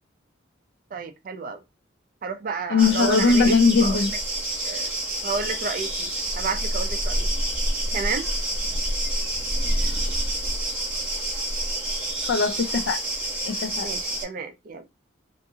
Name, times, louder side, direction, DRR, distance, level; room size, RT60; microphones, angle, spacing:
voice 1, 0.9-1.6 2.2-3.5 3.8-4.0 4.6-4.9 5.2-7.3 7.9-8.3 13.8-14.8, right 4 dB, 45° right, 0.4 m, -31 dB
voice 2, 2.7-4.1 12.3-13.0 13.4-13.9, left 4 dB, 65° left, 0.3 m, -20 dB
sound 1, 2.8-14.2, right 1 dB, 10° right, 0.9 m, -27 dB
2.6 x 2.4 x 2.7 m
head